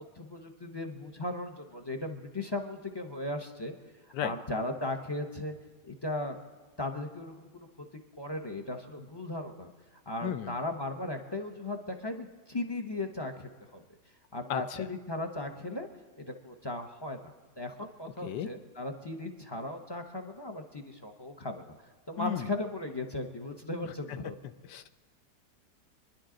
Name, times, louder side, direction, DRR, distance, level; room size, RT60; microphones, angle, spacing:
voice 1, 0.2-3.7 4.2-5.5 5.8-6.4 6.8-7.9 8.2-9.7 10.1-13.8 14.3-15.9 16.2-21.8 22.1-24.4, left 2 dB, 30° left, 4 dB, 0.5 m, -37 dB
voice 2, 10.2-10.5 14.5-14.9 18.2-18.5 22.2-22.5 24.7-24.9, left 9 dB, 75° left, 11 dB, 1.2 m, -34 dB
27.5 x 11.0 x 3.8 m, 1.4 s
omnidirectional pair, 1.9 m